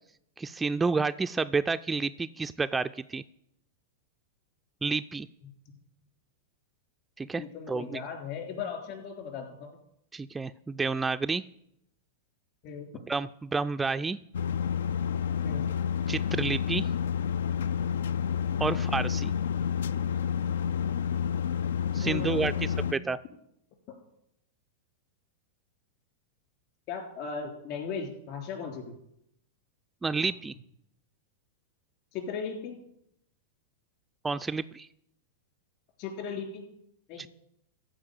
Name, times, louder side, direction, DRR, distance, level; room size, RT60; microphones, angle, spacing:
voice 1, 0.4-3.2 4.8-5.3 7.2-8.0 10.1-11.4 13.1-14.2 16.1-16.9 18.6-19.3 21.9-23.2 30.0-30.5 34.2-34.9 37.2-37.3, right 4 dB, 15° right, 9 dB, 0.3 m, -30 dB
voice 2, 7.4-9.7 12.6-12.9 15.4-15.7 22.0-23.0 26.9-28.9 32.1-32.8 36.0-36.7 37.1-37.2, left 5 dB, 50° left, 4 dB, 3.5 m, -37 dB
sound 1, 14.3-22.9, left 7 dB, 75° left, 0.3 m, -29 dB
14.0 x 4.8 x 8.2 m, 0.75 s
hypercardioid pair, 105°, 0 cm